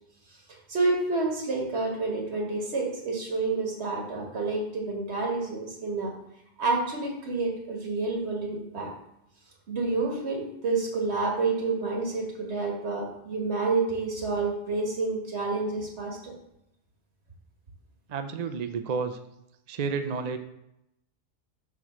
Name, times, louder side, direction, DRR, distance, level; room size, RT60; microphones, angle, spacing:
voice 1, 0.5-6.1 6.6-8.9 9.7-16.3, right 3 dB, 75° right, 0 dB, 1.8 m, -29 dB
voice 2, 18.1-19.2 19.7-20.4, right 5 dB, 50° right, 7 dB, 0.5 m, -30 dB
8.1 x 3.3 x 6.0 m, 0.82 s
omnidirectional pair, 1.1 m